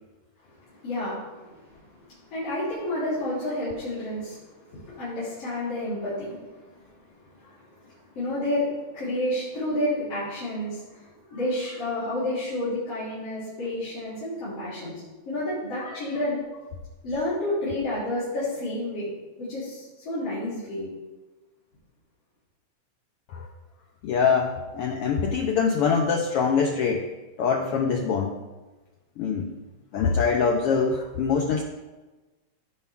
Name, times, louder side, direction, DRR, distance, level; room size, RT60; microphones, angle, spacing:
voice 1, 0.6-2.0 2.3-4.4 4.7-6.9 7.2-16.4 17.0-19.1 19.4-20.9, left 1 dB, 50° left, -13 dB, 4.3 m, -30 dB
voice 2, 24.0-27.1 27.4-28.4 29.2-29.6 29.9-31.6, left 5 dB, 85° left, 3 dB, 1.2 m, -24 dB
15.5 x 5.8 x 3.6 m, 1.2 s
omnidirectional pair, 3.3 m